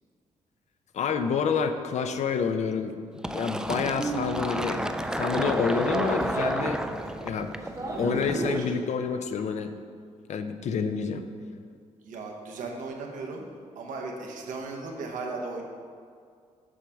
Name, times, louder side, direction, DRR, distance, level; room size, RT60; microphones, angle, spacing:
voice 1, 0.9-3.0 3.2-4.8 5.1-6.8 7.2-7.5 8.0-9.7 10.3-11.3, left 6 dB, 60° left, 8 dB, 0.5 m, -28 dB
Fill (with liquid), 3.2-8.6, right 1 dB, 5° right, 0.3 m, -31 dB
sound 1, 3.6-8.6, right 1 dB, 25° right, 0.9 m, -34 dB
voice 2, 8.3-8.8 12.0-13.5 13.7-15.6, right 3 dB, 80° right, 1 dB, 0.9 m, -36 dB
7.2 x 4.9 x 3.4 m, 2.2 s
supercardioid pair, 60°, 13 cm